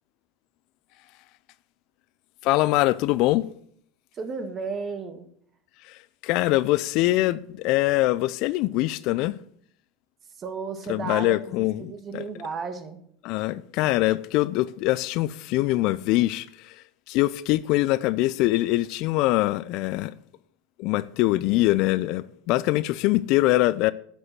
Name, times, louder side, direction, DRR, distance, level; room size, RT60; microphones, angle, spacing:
voice 1, 2.4-3.5 5.8-9.4 10.9-12.3 13.2-20.1 20.8-23.9, left 17 dB, 60° left, 0.5 m, -23 dB
voice 2, 4.1-5.3 10.4-13.0, right 5 dB, 35° right, 1.8 m, -33 dB
8.5 x 8.0 x 7.7 m
hypercardioid pair, 95°, 0 cm